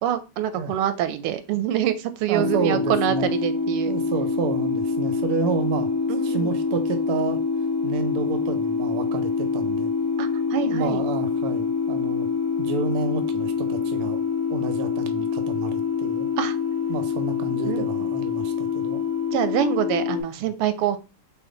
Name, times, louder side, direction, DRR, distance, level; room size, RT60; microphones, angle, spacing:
voice 1, 0.0-3.9 6.1-6.5 10.2-11.0 16.4-16.6 17.6-17.9 19.3-21.0, right 10 dB, 90° right, 1.5 m, -25 dB
sound 1, 2.3-20.2, left 5 dB, 15° left, 1.0 m, -25 dB
voice 2, 2.3-3.3 3.9-5.9 6.2-7.4 7.8-9.9 10.6-12.3 12.6-14.2 14.5-16.3 16.9-19.0 20.4-20.5, right 5 dB, 70° right, 0.9 m, -30 dB
4.3 x 2.8 x 3.8 m
omnidirectional pair, 2.4 m